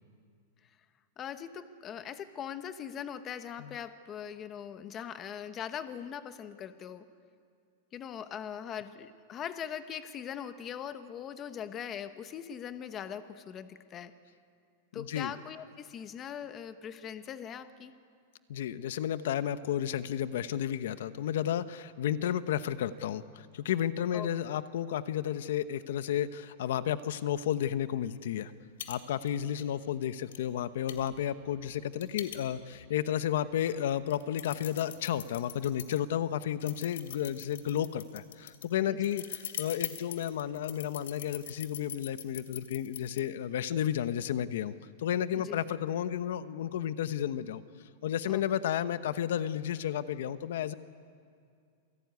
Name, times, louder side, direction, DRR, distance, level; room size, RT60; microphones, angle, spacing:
voice 1, 1.2-7.1 7.9-14.1 14.9-17.9 24.1-24.3 38.9-39.1 45.3-45.6 48.3-48.4, left 8 dB, 20° left, 11 dB, 0.9 m, -41 dB
voice 2, 14.9-15.3 18.5-28.5 28.9-47.6 48.0-50.7, left 10 dB, 65° left, 13 dB, 0.9 m, -32 dB
sound 1, 28.4-28.5 28.8-29.0 29.3-29.6 30.3-30.4 30.9-32.9 33.4-33.5 34.0-36.0 36.6-43.2, left 10 dB, 90° left, 2.6 m, -42 dB
27.5 x 17.5 x 9.6 m, 2.3 s
supercardioid pair, 165°, 0 cm